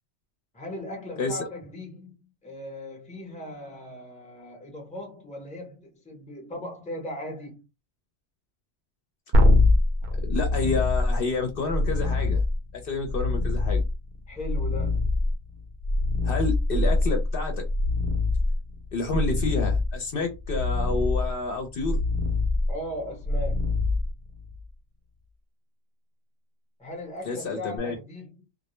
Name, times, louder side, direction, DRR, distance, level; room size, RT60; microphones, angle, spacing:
voice 1, 0.5-7.7 14.3-15.1 22.7-23.8 26.8-28.3, left 1 dB, 10° left, 0.6 m, -38 dB
sound 1, 9.3-24.6 27.8-27.9, left 2 dB, 55° right, 0.6 m, -24 dB
voice 2, 10.2-12.4 12.7-13.8 16.2-17.6 18.9-22.0 27.2-27.9, left 3 dB, 60° left, 0.7 m, -29 dB
2.2 x 2.0 x 2.9 m
omnidirectional pair, 1.1 m